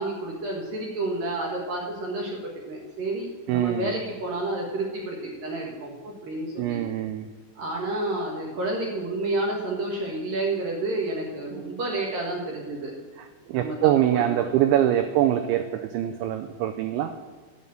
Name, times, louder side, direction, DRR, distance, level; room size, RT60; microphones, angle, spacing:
voice 1, 0.0-6.8 7.6-12.9 13.5-13.8 14.1-14.5, right 2 dB, 55° right, -2 dB, 2.7 m, -30 dB
voice 2, 3.5-4.0 6.6-7.3 13.5-17.2, right 12 dB, 85° right, 8 dB, 2.6 m, -24 dB
10.5 x 7.2 x 8.7 m, 1.4 s
omnidirectional pair, 5.9 m